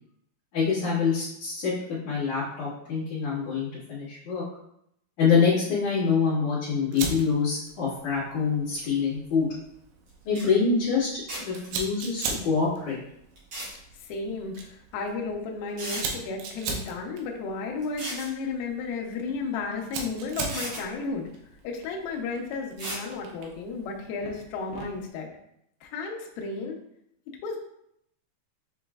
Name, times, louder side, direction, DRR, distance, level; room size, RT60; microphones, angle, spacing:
voice 1, 0.5-4.4 5.2-9.5 10.2-11.1 11.4-13.0, left 5 dB, 55° left, -12 dB, 2.9 m, -25 dB
Fire, 6.9-25.1, right 4 dB, 90° right, 3.0 m, -40 dB
sound 1, 10.1-10.2 10.3-10.5 11.3-11.7 13.4-13.7 15.1-15.2 15.8-16.0 17.8-18.3 19.8-19.9 20.4-20.8 22.8-23.0, right 1 dB, 60° right, 1.9 m, -35 dB
voice 2, 14.1-21.3 21.6-25.3 25.8-26.8 27.4-27.6, left 4 dB, 80° left, 0 dB, 2.2 m, -33 dB
7.5 x 3.0 x 2.3 m, 0.75 s
omnidirectional pair, 5.0 m